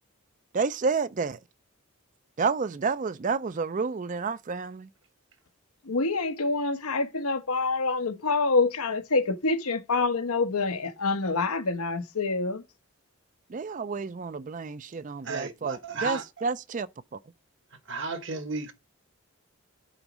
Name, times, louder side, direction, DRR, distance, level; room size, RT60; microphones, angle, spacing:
voice 1, 0.5-1.4 2.4-4.9 13.5-16.9 17.1-17.2, right 4 dB, 35° right, 0.4 m, -30 dB
voice 2, 5.8-12.6, left 3 dB, 90° left, 1.1 m, -26 dB
voice 3, 15.2-16.2 17.8-18.7, right 3 dB, 55° right, 1.1 m, -33 dB
8.9 x 4.0 x 6.0 m
head